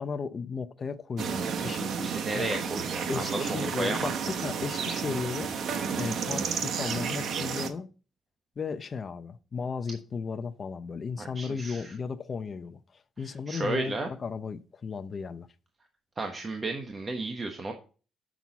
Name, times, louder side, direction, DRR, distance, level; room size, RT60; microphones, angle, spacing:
voice 1, 0.0-2.6 3.1-5.5 6.0-7.9 8.6-15.5, left 5 dB, 40° left, 0.6 m, -35 dB
sound 1, 1.2-7.7, right 6 dB, 65° right, 0.8 m, -32 dB
voice 2, 2.0-4.3 11.2-11.8 13.5-14.1 16.2-17.7, right 2 dB, 35° right, 1.1 m, -33 dB
7.1 x 6.1 x 4.0 m
cardioid pair, 90°, 0 cm